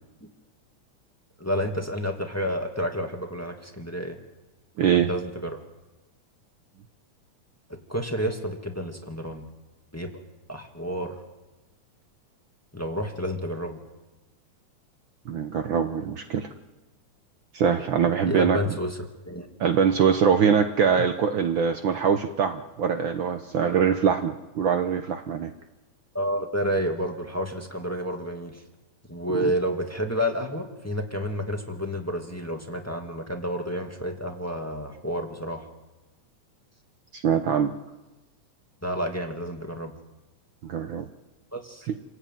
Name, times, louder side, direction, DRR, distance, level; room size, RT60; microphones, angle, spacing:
voice 1, 1.4-4.2 4.9-5.6 7.7-9.4 9.9-10.1 10.5-11.2 12.7-13.8 18.0-19.0 19.2-19.5 26.1-28.6 29.1-35.6 38.8-39.9 41.5-41.8, equal, 5° left, 3 dB, 1.5 m, -30 dB
voice 2, 4.8-5.1 15.3-16.5 17.5-18.6 19.6-25.5 29.4-29.5 37.1-37.7 40.6-41.1 41.9-42.0, right 7 dB, 90° right, 7 dB, 1.0 m, -23 dB
28.0 x 16.0 x 9.2 m, 1.1 s
omnidirectional pair, 3.5 m